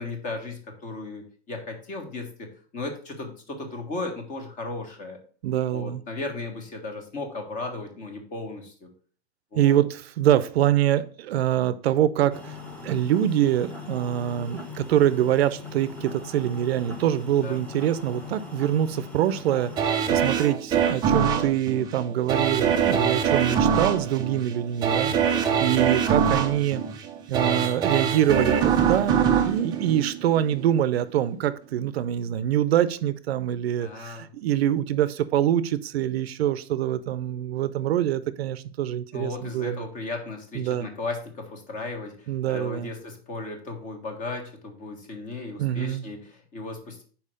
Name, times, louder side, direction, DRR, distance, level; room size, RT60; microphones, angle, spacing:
voice 1, 0.0-2.5 2.7-5.2 5.7-8.9 9.5-9.8 17.4-17.6 22.9-23.2 25.2-25.6 33.8-34.3 39.1-47.0, left 3 dB, 25° left, 1.5 m, -36 dB
voice 2, 5.4-6.0 9.5-12.6 12.8-25.1 25.6-26.8 27.3-29.2 29.5-39.9 40.5-40.9 42.3-42.9 45.6-46.0, right 11 dB, 70° right, 0.6 m, -24 dB
sound 1, 12.3-19.8, left 4 dB, 5° left, 1.0 m, -40 dB
sound 2, 19.8-30.7 31.2-31.3, right 7 dB, 15° right, 0.5 m, -24 dB
5.5 x 4.5 x 6.4 m
supercardioid pair, 155°, 33 cm